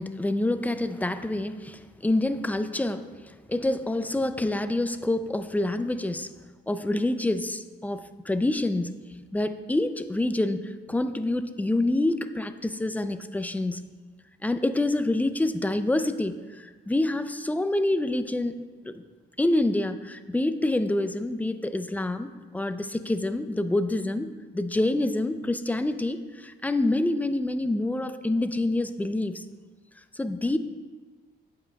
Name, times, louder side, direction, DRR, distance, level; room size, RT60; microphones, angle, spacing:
voice 1, 0.0-6.3 6.7-8.9 9.3-13.8 14.4-19.0 19.4-22.3 22.5-29.4 30.1-30.6, left 2 dB, 10° left, 10 dB, 0.4 m, -27 dB
9.6 x 8.4 x 2.4 m, 1.4 s
cardioid pair, 90°, 20 cm